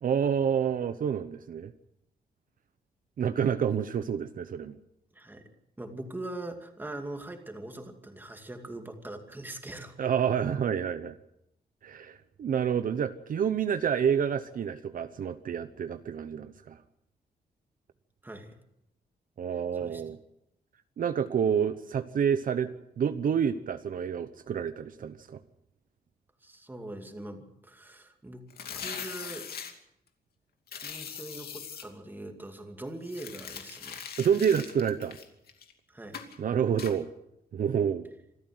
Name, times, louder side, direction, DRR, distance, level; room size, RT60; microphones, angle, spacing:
voice 1, 0.0-1.7 3.2-4.8 10.0-11.2 11.8-16.8 19.4-20.2 21.0-22.7 23.0-25.4 34.2-35.2 36.4-37.1 37.5-38.1, right 8 dB, 60° right, 11 dB, 0.9 m, -28 dB
voice 2, 5.1-5.5 5.8-10.0 18.2-18.6 19.8-20.0 26.4-28.5 28.8-29.5 30.8-34.1 35.9-36.3, right 1 dB, 10° right, 5 dB, 2.4 m, -42 dB
sound 1, 28.5-29.7 30.7-31.8 33.0-35.7 36.1-36.4 36.8-36.9, left 7 dB, 75° left, 2.7 m, -41 dB
26.5 x 13.5 x 7.8 m, 0.83 s
wide cardioid pair, 165°, 16 cm